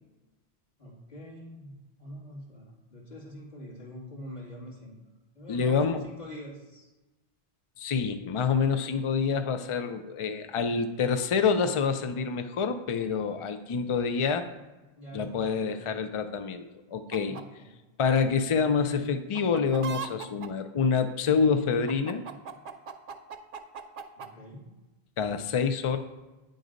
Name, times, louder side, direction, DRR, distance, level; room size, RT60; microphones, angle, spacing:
voice 1, 0.8-5.0 5.3-6.9 14.9-16.0 17.2-17.7 24.2-24.7, equal, 40° left, -4 dB, 2.2 m, -45 dB
voice 2, 5.5-6.0 7.8-14.5 15.1-17.4 18.0-22.3 25.2-26.0, left 5 dB, 60° left, 8 dB, 0.3 m, -27 dB
sound 1, 17.1-17.4 19.4-20.5 21.9-24.3, right 6 dB, 60° right, 0.7 m, -38 dB
9.0 x 3.9 x 5.1 m, 1.1 s
omnidirectional pair, 1.1 m